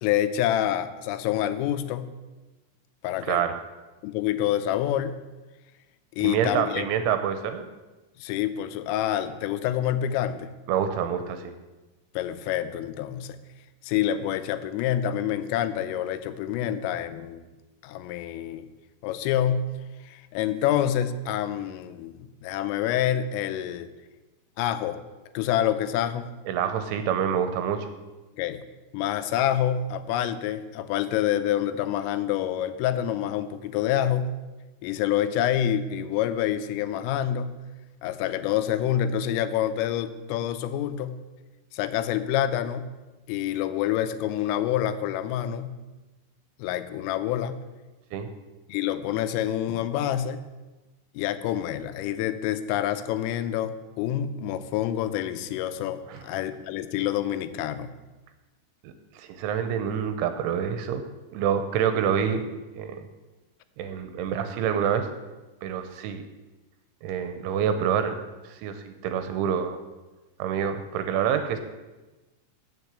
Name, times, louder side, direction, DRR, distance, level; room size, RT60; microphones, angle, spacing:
voice 1, 0.0-2.1 3.0-3.4 4.0-5.2 6.2-6.9 8.2-10.5 12.2-13.4 13.8-17.4 17.8-18.7 19.0-19.7 20.0-23.9 24.6-25.0 25.3-26.3 28.3-28.6 28.9-34.3 34.8-37.6 38.0-41.2 41.7-42.9 43.3-45.7 46.6-47.6 48.7-50.4 51.1-57.9, left 11 dB, 90° left, 10 dB, 3.3 m, -27 dB
voice 2, 3.2-3.6 6.2-7.6 10.7-11.5 26.5-27.9 48.1-48.3 56.1-56.2 58.8-58.9 59.2-61.0 61.3-62.5 62.8-63.0 63.8-65.1 65.6-66.2 67.0-69.8 70.4-71.6, right 8 dB, 85° right, 8 dB, 2.9 m, -27 dB
7.8 x 7.2 x 8.0 m, 1.2 s
omnidirectional pair, 5.7 m